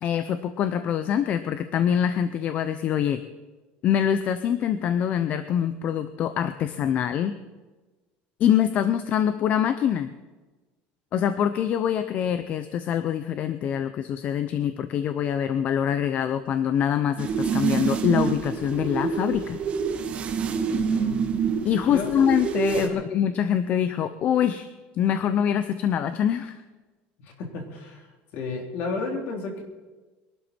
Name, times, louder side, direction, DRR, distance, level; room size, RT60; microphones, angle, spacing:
voice 1, 0.0-3.2 3.8-7.4 8.4-10.1 11.1-19.6 21.6-24.7 24.9-26.6, left 9 dB, 40° left, 11 dB, 0.6 m, -24 dB
sound 1, 17.2-22.9, right 6 dB, 30° right, 1.1 m, -27 dB
voice 2, 20.7-21.2 21.9-22.1 22.7-23.0 27.2-28.1 28.3-29.6, left 4 dB, 55° left, 3 dB, 3.1 m, -32 dB
22.0 x 12.0 x 4.4 m, 1.2 s
cardioid pair, 160°, 4 cm